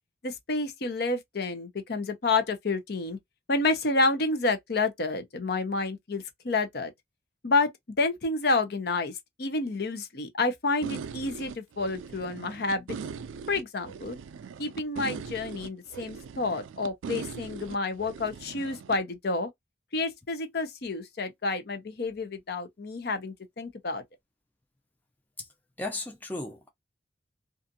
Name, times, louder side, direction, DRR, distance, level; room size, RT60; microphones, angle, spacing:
voice 1, 0.2-3.2 3.5-6.9 7.4-7.7 8.0-9.1 9.4-13.0 13.5-14.2 14.6-19.5 19.9-24.0, left 3 dB, 55° left, 0.6 m, -29 dB
sound 1, 10.8-19.0, right 6 dB, 85° right, 0.3 m, -40 dB
voice 2, 25.8-26.7, left 2 dB, 10° left, 0.5 m, -35 dB
2.5 x 2.4 x 2.6 m
head